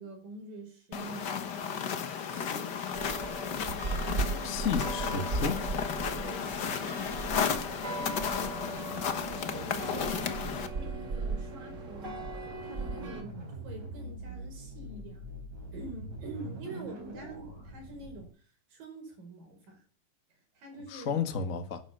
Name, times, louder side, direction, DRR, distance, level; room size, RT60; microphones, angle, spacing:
voice 1, 0.0-1.6 2.3-3.7 4.3-5.2 6.2-8.7 9.2-9.9 10.7-12.3 12.6-13.4 13.6-15.3 15.7-19.8 20.5-21.1, right 2 dB, 85° right, 6.7 m, -47 dB
sound 1, 0.9-10.7, left 7 dB, 65° left, 1.0 m, -34 dB
sound 2, 2.9-13.2, right 3 dB, 30° right, 1.7 m, -37 dB
voice 2, 4.4-5.6 20.9-21.8, left 6 dB, 35° left, 1.3 m, -32 dB
sound 3, 10.6-18.3, right 1 dB, 55° right, 5.5 m, -44 dB
11.5 x 11.5 x 6.8 m
omnidirectional pair, 3.8 m